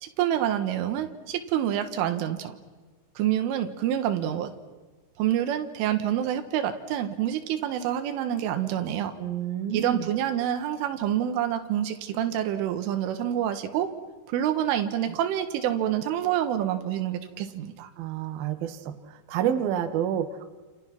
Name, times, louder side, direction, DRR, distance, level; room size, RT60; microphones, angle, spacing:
voice 1, 0.0-2.6 3.2-4.5 5.2-9.1 9.7-13.9 14.3-17.9, right 11 dB, 90° right, 8 dB, 4.0 m, -27 dB
voice 2, 9.2-10.1 18.0-19.0 19.3-20.5, right 9 dB, 65° right, 8 dB, 2.9 m, -29 dB
29.5 x 28.5 x 6.0 m, 1.3 s
omnidirectional pair, 5.5 m